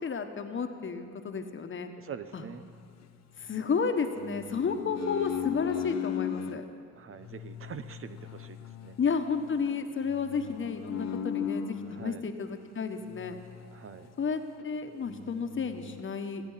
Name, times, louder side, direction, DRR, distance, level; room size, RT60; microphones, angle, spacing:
voice 1, 0.0-1.9 2.3-2.4 3.4-6.6 9.0-13.4 14.2-16.4, left 5 dB, 40° left, 6 dB, 1.3 m, -32 dB
voice 2, 2.0-2.6 6.9-9.0 11.9-12.3 13.7-14.1, right 7 dB, 45° right, 11 dB, 0.8 m, -44 dB
sound 1, 2.4-3.7 4.2-6.6 7.2-12.2 13.1-14.3 14.6-14.7 15.0-16.0, left 9 dB, 60° left, 0.9 m, -38 dB
25.0 x 9.3 x 5.7 m, 2.2 s
cardioid pair, 90°, 30 cm